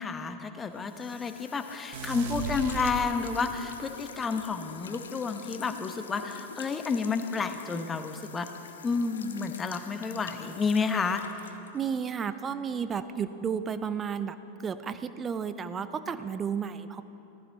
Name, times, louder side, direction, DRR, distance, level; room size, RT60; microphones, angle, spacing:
voice 1, 0.0-8.5 8.8-11.2, left 4 dB, 20° left, 8 dB, 0.9 m, -30 dB
sound 1, 0.7-12.2, left 6 dB, 65° left, 0.8 m, -46 dB
sound 2, 1.9-3.7, right 6 dB, 50° right, 0.8 m, -37 dB
voice 2, 11.7-17.0, right 7 dB, 20° right, 12 dB, 0.6 m, -32 dB
17.0 x 14.5 x 4.0 m, 3.0 s
figure-of-eight pair, 90°, 0 cm